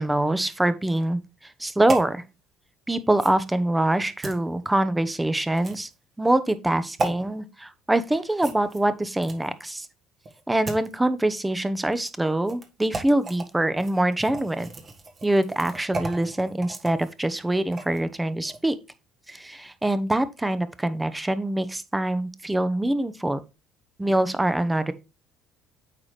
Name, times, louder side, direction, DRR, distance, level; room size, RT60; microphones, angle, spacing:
voice 1, 0.0-2.2 2.9-5.9 6.2-9.9 10.5-14.7 15.2-18.8 19.3-23.4 24.0-24.9, right 1 dB, 10° right, 0.9 m, -24 dB
sound 1, 1.9-2.1 3.2-3.4 4.2-4.4 5.6-5.9 7.0-7.1 8.4-9.6 10.2-10.9 11.9-12.1 12.5-12.7 12.9-13.5 13.8-18.0 18.4-18.6, right 3 dB, 40° right, 1.6 m, -34 dB
8.5 x 4.9 x 3.2 m
hypercardioid pair, 65°, 0 cm